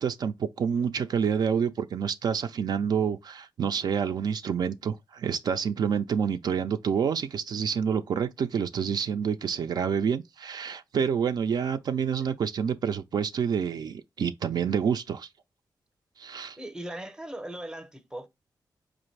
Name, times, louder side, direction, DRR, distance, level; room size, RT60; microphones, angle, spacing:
voice 1, 0.0-15.3 16.2-16.6, right 7 dB, 65° right, 0.4 m, -28 dB
voice 2, 16.6-18.3, right 1 dB, 10° right, 0.6 m, -38 dB
4.7 x 2.5 x 3.1 m
wide cardioid pair, 130°, 8 cm